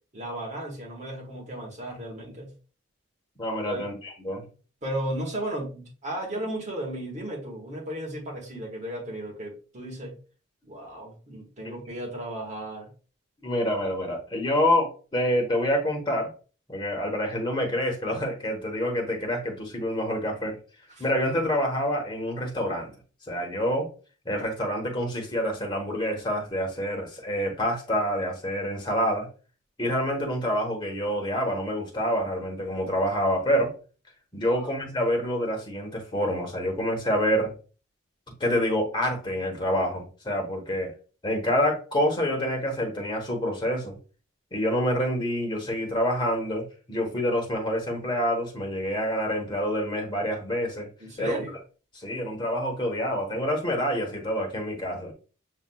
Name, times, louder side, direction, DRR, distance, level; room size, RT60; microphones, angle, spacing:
voice 1, 0.1-2.5 3.6-3.8 4.8-10.2 10.6-12.9 21.0-21.1 34.5-34.7 51.0-51.6, right 1 dB, 35° right, 1.3 m, -35 dB
voice 2, 3.4-4.5 13.4-16.3 16.7-20.6 21.0-22.9 23.3-23.9 24.2-29.3 29.8-33.7 34.3-37.5 38.4-40.9 41.2-44.0 44.5-50.9 51.2-51.4 52.0-55.1, equal, 20° left, 1.0 m, -27 dB
7.3 x 2.4 x 2.2 m
head